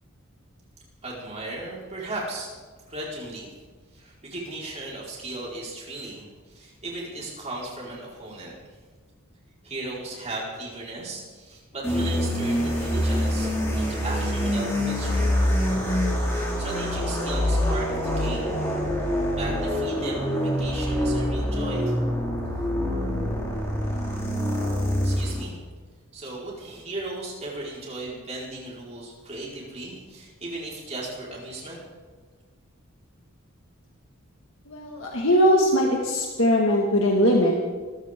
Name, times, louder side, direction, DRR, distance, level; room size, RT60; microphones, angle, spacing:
voice 1, 1.0-2.5 2.9-3.5 3.9-8.5 9.6-13.5 13.8-15.3 16.6-17.9 18.2-18.5 19.3-21.9 25.0-25.6 26.1-31.8, right 2 dB, 30° right, -5 dB, 4.8 m, -36 dB
sound 1, 11.8-25.5, equal, 15° left, 5.5 m, -25 dB
voice 2, 34.7-37.5, equal, 65° left, -1 dB, 1.9 m, -20 dB
25.5 x 15.0 x 3.8 m, 1.5 s
head